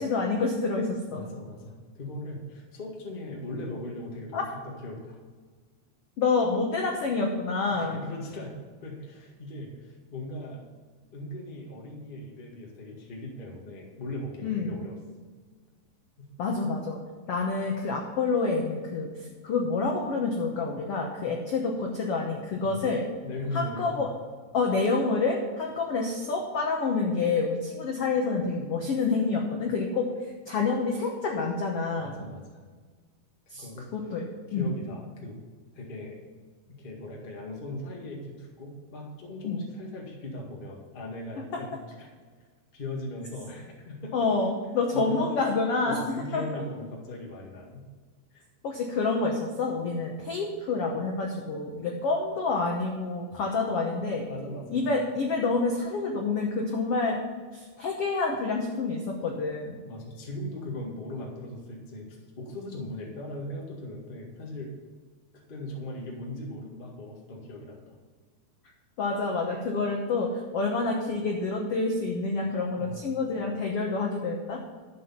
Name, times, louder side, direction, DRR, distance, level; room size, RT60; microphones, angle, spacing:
voice 1, 0.0-1.3 4.3-4.4 6.2-8.0 14.4-14.7 16.4-17.0 17.3-19.1 19.4-23.0 23.5-24.1 24.5-32.2 33.5-33.6 33.9-34.3 34.5-34.7 39.4-39.6 44.1-46.4 48.6-54.3 54.7-57.2 57.5-59.7 69.0-74.6, left 3 dB, 75° left, 1 dB, 1.3 m, -28 dB
voice 2, 1.1-5.2 7.7-10.6 11.1-14.9 16.2-16.3 22.6-22.8 23.2-24.1 32.0-32.6 33.5-33.9 34.5-35.4 35.7-36.2 36.7-42.1 42.7-44.3 44.9-45.2 45.8-47.9 48.3-48.5 53.5-53.9 54.3-54.9 59.8-64.7 65.3-67.8 72.8-73.1, left 1 dB, 30° left, -1 dB, 0.9 m, -39 dB
12.5 x 7.1 x 5.8 m, 1.5 s
omnidirectional pair, 4.3 m